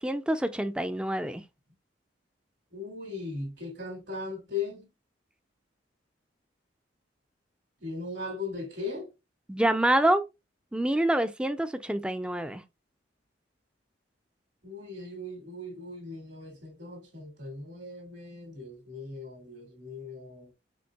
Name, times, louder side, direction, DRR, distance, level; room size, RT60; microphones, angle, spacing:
voice 1, 0.0-1.4 9.5-10.2 10.7-12.6, right 1 dB, 5° right, 0.4 m, -26 dB
voice 2, 2.7-4.9 7.8-9.1 14.6-20.5, left 3 dB, 75° right, 2.3 m, -38 dB
5.2 x 3.6 x 2.3 m
head